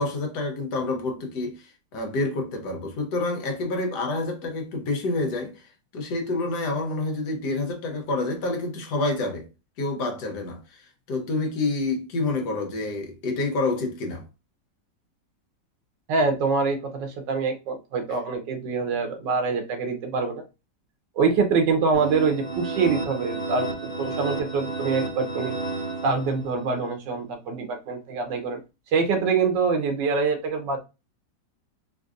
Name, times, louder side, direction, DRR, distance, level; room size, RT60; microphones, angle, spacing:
voice 1, 0.0-9.5 9.8-14.2, left 2 dB, 70° left, 1.4 m, -28 dB
voice 2, 16.1-20.4 21.2-23.7 24.0-25.6 26.0-28.6 28.9-30.8, right 4 dB, 85° right, 1.5 m, -25 dB
sound 1, 21.9-26.7, right 3 dB, 20° right, 1.4 m, -31 dB
4.1 x 2.6 x 2.4 m
omnidirectional pair, 1.9 m